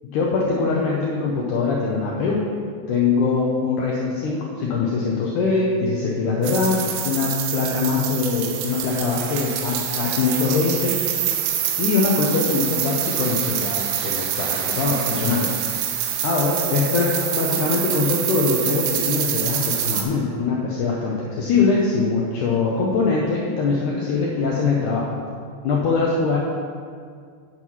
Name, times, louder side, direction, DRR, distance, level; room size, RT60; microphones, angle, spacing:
voice 1, 0.1-2.4 2.9-10.9 11.8-15.7 16.2-25.1 25.6-26.4, left 4 dB, 85° left, -3 dB, 1.7 m, -22 dB
sound 1, 6.4-20.0, right 10 dB, 85° right, 2.6 m, -26 dB
9.4 x 4.6 x 5.6 m, 2.1 s
omnidirectional pair, 4.6 m